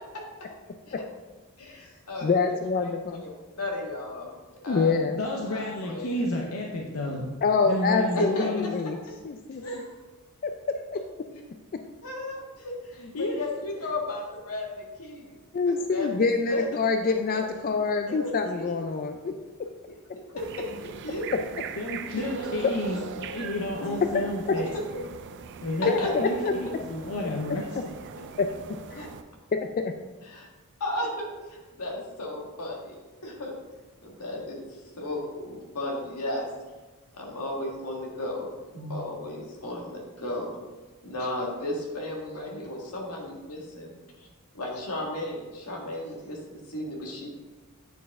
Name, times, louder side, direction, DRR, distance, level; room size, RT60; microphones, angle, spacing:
voice 1, 1.7-2.5 2.8-2.9 3.2-4.3 4.6-4.9 5.5-6.2 8.2-8.5 12.0-15.4 15.7-16.1 16.5-16.6 17.3-17.4 18.1-18.7 20.4-20.5 20.8-21.3 22.1-22.2 22.9-23.4 23.8-24.0 25.8-26.1 28.9-29.1 30.2-30.5 30.8-33.0 33.2-33.5 34.0-36.5 37.2-38.5 38.7-40.6 41.0-43.9 44.5-47.3, left 1 dB, 90° left, -1 dB, 1.7 m, -34 dB
voice 2, 2.2-3.2 4.7-5.2 7.4-9.0 9.2-9.8 10.4-10.5 11.7-11.8 15.5-19.3 24.0-24.1 24.5-24.6 25.9-26.0 26.4-26.5 28.4-28.5 28.9-29.1 29.5-29.9, left 4 dB, 40° left, 6 dB, 0.3 m, -26 dB
voice 3, 5.1-7.3 7.6-8.7 9.6-9.9 13.0-13.4 21.8-23.0 23.3-24.7 25.6-25.9 26.2-27.6, left 1 dB, 70° left, -1 dB, 0.8 m, -31 dB
sound 1, 20.4-29.2, right 6 dB, 55° right, 0.4 m, -40 dB
9.3 x 4.6 x 3.6 m, 1.3 s
head